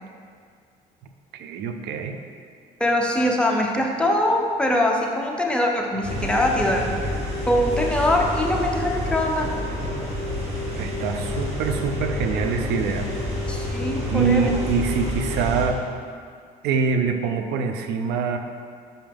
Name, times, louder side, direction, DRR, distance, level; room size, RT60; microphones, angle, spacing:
voice 1, 1.3-2.2 10.8-13.1 14.1-15.8 16.6-18.4, right 5 dB, 80° right, 6 dB, 0.5 m, -24 dB
voice 2, 2.8-6.9 7.5-9.5 13.5-14.4, left 1 dB, 5° left, -1 dB, 0.7 m, -22 dB
sound 1, 6.0-15.7, left 1 dB, 40° right, 1.3 m, -28 dB
5.7 x 5.4 x 3.5 m, 2.1 s
cardioid pair, 110°, 17 cm